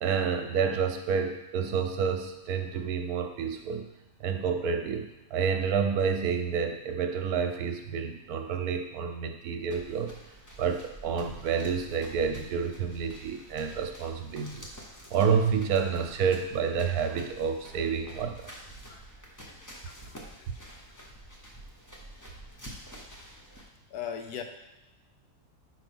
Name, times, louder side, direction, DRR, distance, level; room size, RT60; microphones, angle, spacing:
voice 1, 0.0-3.9 4.2-10.1 10.6-14.7 15.1-18.5, right 6 dB, 80° right, 5 dB, 1.2 m, -29 dB
sound 1, 9.7-23.6, right 1 dB, 15° left, 0.8 m, -48 dB
voice 2, 19.4-20.8 23.9-24.4, left 8 dB, 85° left, 6 dB, 1.2 m, -41 dB
4.9 x 4.5 x 6.1 m, 1.0 s
omnidirectional pair, 1.6 m